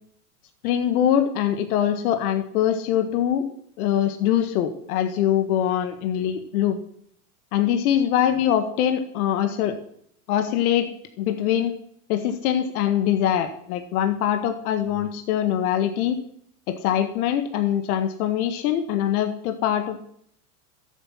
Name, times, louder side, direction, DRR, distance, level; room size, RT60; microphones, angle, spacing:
voice 1, 0.6-3.5 3.8-6.8 7.5-9.7 10.3-10.9 11.2-11.7 12.1-16.2 16.7-20.0, left 10 dB, 65° left, 7 dB, 1.7 m, -23 dB
12.5 x 8.2 x 7.5 m, 0.65 s
hypercardioid pair, 105°, 47 cm